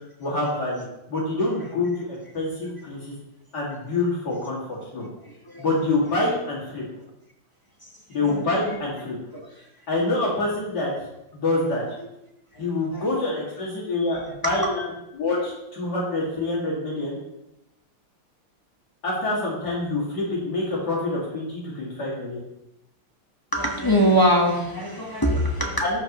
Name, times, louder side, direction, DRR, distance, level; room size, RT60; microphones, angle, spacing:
voice 1, 0.2-2.1 2.3-3.1 3.5-5.1 5.6-6.8 8.1-9.2 9.9-10.9 11.3-11.8 12.6-14.8 15.1-17.2 19.0-22.4 25.8-26.0, left 2 dB, 50° left, -6 dB, 2.7 m, -26 dB
voice 2, 5.2-5.6 8.2-8.8 9.3-9.4 12.5-13.0 14.4-14.7 23.5-25.8, equal, 20° left, -2 dB, 0.5 m, -23 dB
13.5 x 5.3 x 3.0 m, 0.88 s
omnidirectional pair, 2.4 m